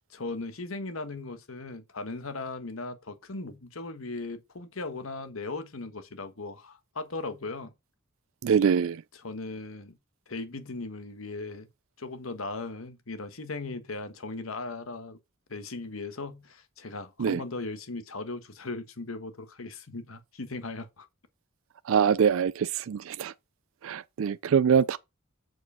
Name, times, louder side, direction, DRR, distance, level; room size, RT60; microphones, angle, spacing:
voice 1, 0.1-7.7 9.1-10.0 10.3-11.7 12.0-15.2 15.5-21.1, left 3 dB, 80° left, 1.3 m, -38 dB
voice 2, 8.4-9.0 17.2-17.4 21.9-23.3 23.8-25.0, right 7 dB, 70° right, 0.4 m, -24 dB
7.8 x 4.6 x 5.5 m
head